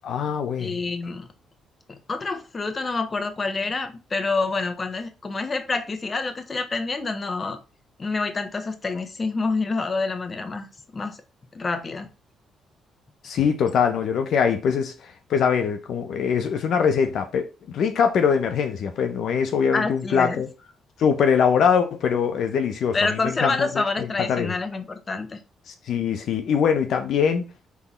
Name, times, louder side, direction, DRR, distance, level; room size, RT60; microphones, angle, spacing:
voice 1, 0.0-0.8 13.2-14.9 15.3-20.5 21.0-23.0 23.2-23.7 24.0-24.5 25.7-27.5, left 7 dB, 70° left, 0.9 m, -22 dB
voice 2, 0.6-1.3 1.9-7.6 8.0-10.7 10.9-11.2 11.5-12.1 19.7-20.4 22.9-25.4, left 3 dB, 30° left, 1.2 m, -27 dB
6.0 x 4.0 x 4.4 m
cardioid pair, 90°, 0 cm